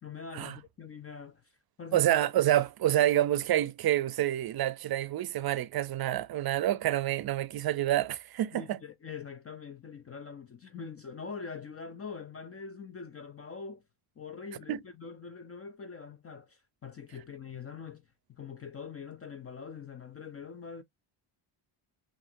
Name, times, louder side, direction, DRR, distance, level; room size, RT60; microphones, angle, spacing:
voice 1, 0.0-1.4 1.8-2.1 8.5-13.8 14.2-20.8, left 5 dB, 30° left, 0.5 m, -44 dB
voice 2, 1.9-8.8 14.7-14.8, right 13 dB, 50° right, 0.6 m, -28 dB
5.7 x 2.5 x 2.5 m
cardioid pair, 110°, 50 cm